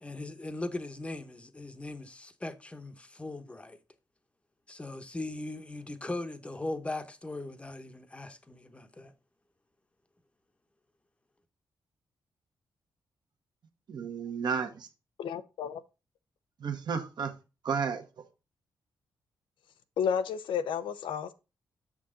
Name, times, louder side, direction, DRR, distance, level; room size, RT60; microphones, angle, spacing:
voice 1, 0.0-3.8 4.7-9.1, left 2 dB, 15° left, 0.9 m, -39 dB
voice 2, 13.9-14.9 16.6-17.3 17.6-18.0, right 6 dB, 60° right, 1.2 m, -32 dB
voice 3, 15.2-15.8 20.0-21.3, left 7 dB, 90° left, 0.7 m, -31 dB
7.1 x 6.3 x 3.7 m
cardioid pair, 105°, 8 cm